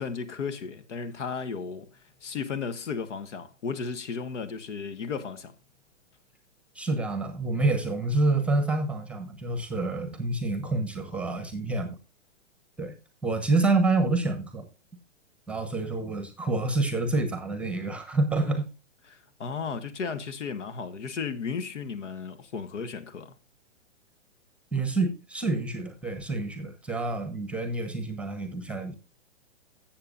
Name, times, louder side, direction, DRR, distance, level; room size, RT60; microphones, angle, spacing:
voice 1, 0.0-1.9 2.2-5.5 19.1-23.3, left 5 dB, 70° left, 1.4 m, -34 dB
voice 2, 6.7-11.9 12.8-13.0 13.2-14.7 15.5-18.6 24.7-29.0, right 2 dB, 5° right, 0.9 m, -27 dB
14.0 x 7.6 x 2.5 m
hypercardioid pair, 140°, 37 cm